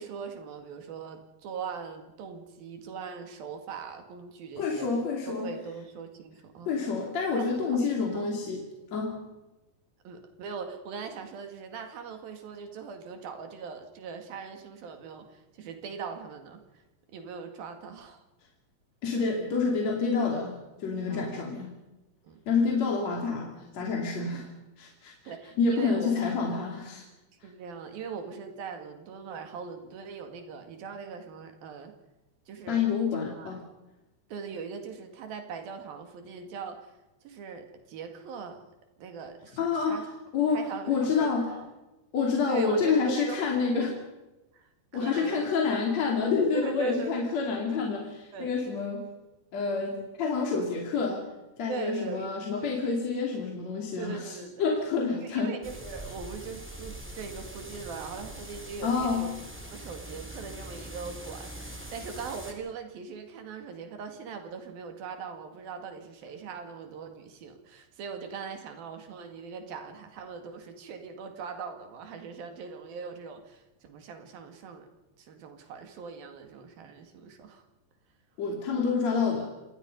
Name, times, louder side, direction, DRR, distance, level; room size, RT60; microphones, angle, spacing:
voice 1, 0.0-4.9 5.3-7.0 7.4-7.5 7.7-8.3 10.0-16.8 17.1-18.2 21.1-21.5 22.2-22.4 25.3-26.3 27.4-31.9 32.5-32.9 33.1-33.6 34.3-38.6 39.0-40.1 40.5-41.7 42.5-43.4 43.7-44.0 44.5-45.5 46.5-47.6 48.3-48.6 51.7-52.3 54.0-54.7 55.2-59.3 59.7-74.9 75.2-77.6, right 5 dB, 70° right, 6 dB, 3.8 m, -40 dB
voice 2, 4.6-5.5 6.7-8.7 8.9-9.2 19.0-21.7 22.5-24.5 24.8-25.3 25.6-27.1 32.7-33.6 39.6-40.0 40.3-41.5 42.1-43.9 44.9-49.1 49.5-51.3 51.6-55.5 58.8-59.3 78.4-79.5, left 5 dB, 45° left, 1 dB, 3.6 m, -28 dB
sound 1, 55.6-62.5, right 1 dB, 5° right, 2.2 m, -43 dB
27.0 x 20.0 x 5.3 m, 1.0 s
omnidirectional pair, 4.4 m